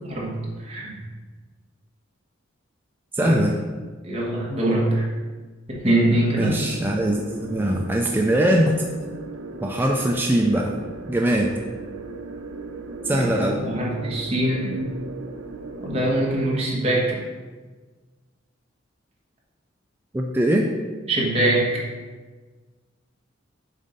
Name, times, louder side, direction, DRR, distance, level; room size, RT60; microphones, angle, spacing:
voice 1, 0.0-1.0 3.2-3.4 4.0-5.1 5.7-6.5 13.1-14.9 15.8-17.2 21.1-21.8, right 1 dB, 30° right, -4 dB, 1.4 m, -23 dB
voice 2, 3.1-3.6 6.3-8.8 9.6-10.8 11.1-11.5 13.0-13.7 20.1-20.7, right 1 dB, 10° right, 0 dB, 0.3 m, -21 dB
sound 1, 6.0-16.5, right 3 dB, 80° right, 0.5 m, -37 dB
7.3 x 2.6 x 5.3 m, 1.4 s
head